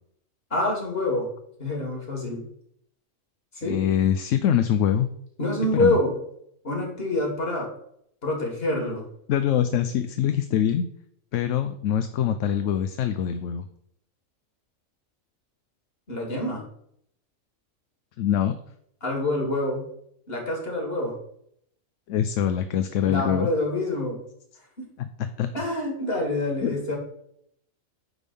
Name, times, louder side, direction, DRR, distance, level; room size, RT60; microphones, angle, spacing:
voice 1, 0.5-1.3 1.6-2.4 3.5-3.8 5.4-6.2 6.6-7.7 8.2-9.0 16.1-16.6 19.0-19.9 20.3-21.1 23.0-24.2 25.5-27.0, left 1 dB, 45° left, 0 dB, 2.7 m, -26 dB
voice 2, 3.6-5.1 5.7-6.0 9.3-10.9 11.3-13.6 18.2-18.5 22.1-23.5 25.4-25.5 26.6-26.7, left 9 dB, 70° left, 10 dB, 0.9 m, -24 dB
9.9 x 3.6 x 6.8 m, 0.70 s
omnidirectional pair, 1.4 m